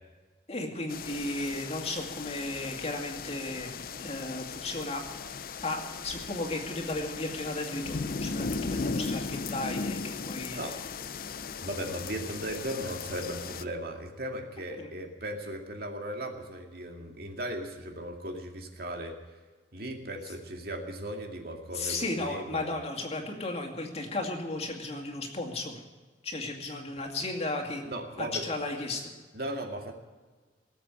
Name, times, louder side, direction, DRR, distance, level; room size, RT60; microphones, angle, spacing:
voice 1, 0.5-5.0 5.6-10.6 14.8-14.9 20.1-20.2 21.7-25.8 26.2-27.8 28.2-29.1, left 2 dB, 35° left, 2 dB, 2.3 m, -35 dB
sound 1, 0.9-13.6, left 4 dB, 55° left, 0.6 m, -37 dB
voice 2, 11.6-19.2 19.7-22.7 27.8-28.4 29.3-29.9, right 1 dB, 55° right, 3 dB, 2.3 m, -37 dB
19.0 x 7.9 x 9.5 m, 1.4 s
head